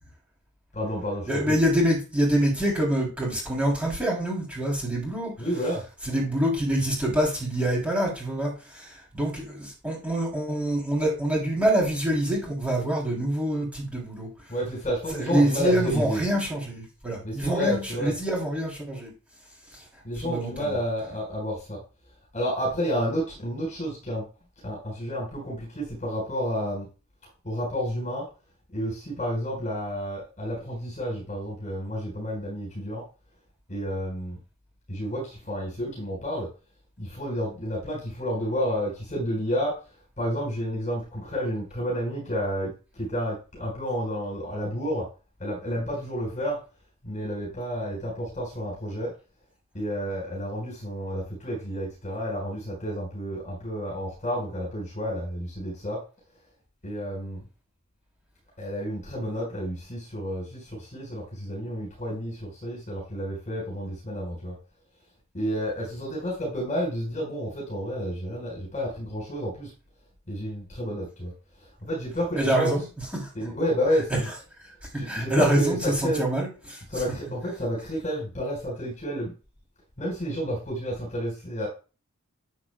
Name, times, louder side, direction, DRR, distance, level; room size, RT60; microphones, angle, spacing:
voice 1, 0.7-1.6 5.4-5.8 14.5-16.2 17.2-18.2 20.0-21.8 22.3-24.2 24.6-26.9 27.4-28.3 28.7-33.0 33.7-34.4 34.9-36.5 37.0-39.8 40.2-45.1 45.4-46.6 47.0-49.1 49.7-56.0 56.8-57.4 58.6-64.5 65.3-69.7 70.3-71.3 71.6-72.8 73.3-74.3 74.9-76.3 76.9-79.3 80.0-81.7, equal, 35° left, -3 dB, 4.6 m, -30 dB
voice 2, 1.3-5.3 6.0-14.5 15.2-19.1 19.7-19.8 20.2-20.7 72.4-72.8 73.1-73.3 74.9-76.8, right 1 dB, 5° right, -3 dB, 3.2 m, -26 dB
12.5 x 7.7 x 2.3 m, 0.32 s
head